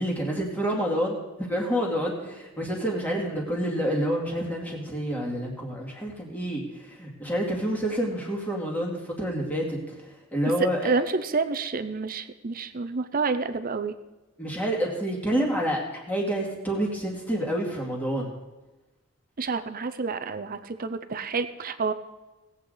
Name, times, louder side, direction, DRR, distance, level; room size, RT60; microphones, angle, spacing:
voice 1, 0.0-9.9 10.3-10.9 14.4-18.3, equal, 5° left, -3 dB, 2.3 m, -28 dB
voice 2, 10.8-13.9 19.4-21.9, right 4 dB, 40° right, 9 dB, 0.7 m, -29 dB
18.5 x 8.2 x 3.9 m, 1.1 s
head